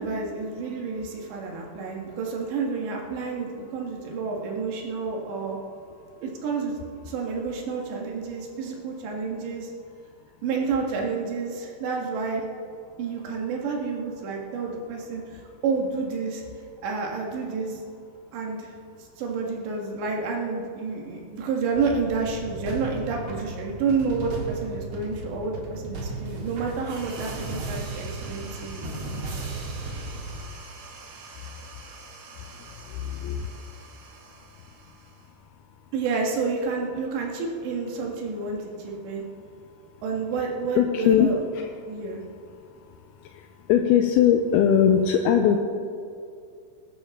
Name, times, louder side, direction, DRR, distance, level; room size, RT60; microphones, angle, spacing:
voice 1, 0.0-5.6 6.2-6.8 7.0-9.7 10.4-12.5 13.0-16.4 16.8-17.8 18.3-18.7 19.0-28.8 35.9-39.2 40.0-41.4 41.9-42.2, right 4 dB, 90° right, 0 dB, 4.0 m, -29 dB
sound 1, 21.7-30.4, right 2 dB, 50° right, 2.2 m, -35 dB
sound 2, 26.8-35.7, right 4 dB, 70° right, 3.2 m, -46 dB
voice 2, 40.8-41.7 43.7-45.6, left 8 dB, 80° left, 4 dB, 2.4 m, -20 dB
20.5 x 11.5 x 3.7 m, 2.4 s
omnidirectional pair, 4.9 m